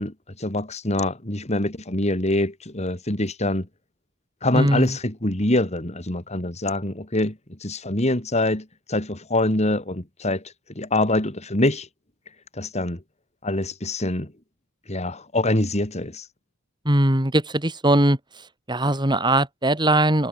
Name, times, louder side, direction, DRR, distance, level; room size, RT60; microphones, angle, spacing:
voice 1, 0.0-3.7 4.4-10.4 10.7-11.9 12.6-13.0 13.4-14.3 14.9-16.2, left 1 dB, 35° left, 3.1 m, -25 dB
voice 2, 4.5-5.0 16.9-18.2 18.7-20.3, right 1 dB, 20° right, 3.6 m, -20 dB
head